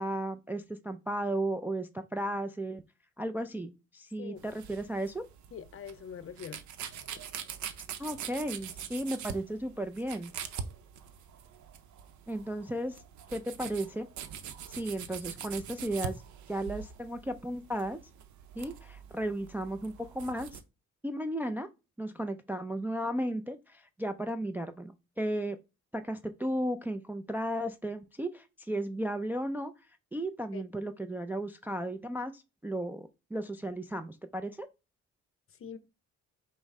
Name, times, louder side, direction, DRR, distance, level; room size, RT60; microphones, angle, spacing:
voice 1, 0.0-2.8 3.2-5.2 8.0-10.3 12.3-13.0 13.3-14.1 14.7-16.2 16.5-18.0 18.6-20.6 21.0-21.7 22.0-25.6 25.9-29.7 30.1-34.7, right 1 dB, 5° right, 0.3 m, -34 dB
sound 1, 4.4-20.6, right 8 dB, 70° right, 0.6 m, -44 dB
voice 2, 5.5-6.6 30.5-30.6 35.5-35.8, left 7 dB, 45° left, 0.6 m, -43 dB
5.2 x 2.0 x 3.6 m
cardioid pair, 90°, 30 cm